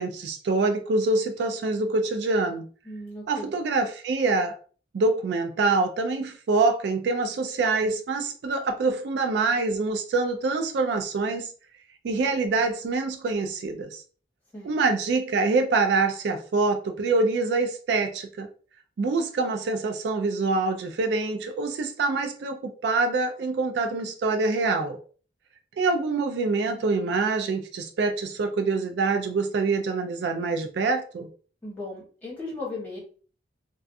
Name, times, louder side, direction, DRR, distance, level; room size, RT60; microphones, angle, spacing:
voice 1, 0.0-2.7 3.3-4.5 4.9-11.5 12.0-14.0 14.6-18.5 19.0-25.0 25.8-31.3, right 3 dB, 70° right, 0.3 m, -25 dB
voice 2, 2.8-3.5 14.5-14.7 31.6-33.0, left 2 dB, 10° left, 1.1 m, -36 dB
2.4 x 2.3 x 2.5 m
head